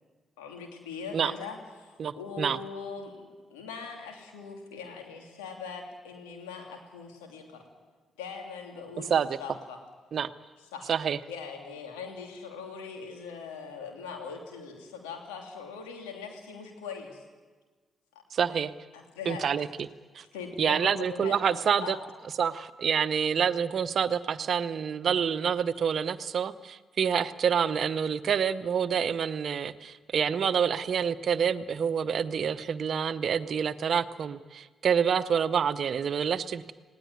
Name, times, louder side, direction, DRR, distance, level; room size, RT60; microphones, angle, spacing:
voice 1, 0.4-3.2 3.5-7.6 8.2-9.8 10.6-10.9 11.3-17.2 18.9-19.6 20.3-22.0, left 5 dB, 85° left, 2 dB, 3.0 m, -41 dB
voice 2, 2.0-2.6 9.1-9.4 10.1-10.3 10.9-11.2 18.3-18.7 19.3-19.7 20.1-20.2 20.6-22.0 22.4-36.7, right 7 dB, 60° right, 13 dB, 0.9 m, -27 dB
20.0 x 17.5 x 9.5 m, 1.4 s
hypercardioid pair, 40°, 0 cm